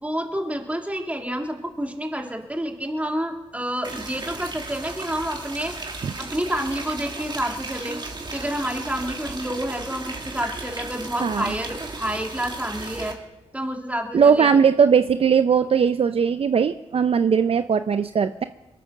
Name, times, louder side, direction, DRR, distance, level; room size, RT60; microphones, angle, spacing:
voice 1, 0.0-8.0 8.3-13.1 13.5-14.5, equal, 10° right, 2 dB, 2.7 m, -29 dB
sound 1, 3.8-13.1, right 3 dB, 40° right, 2.4 m, -35 dB
voice 2, 14.1-18.4, right 6 dB, 55° right, 10 dB, 0.5 m, -19 dB
22.0 x 8.6 x 6.4 m, 1.0 s
cardioid pair, 55°, 12 cm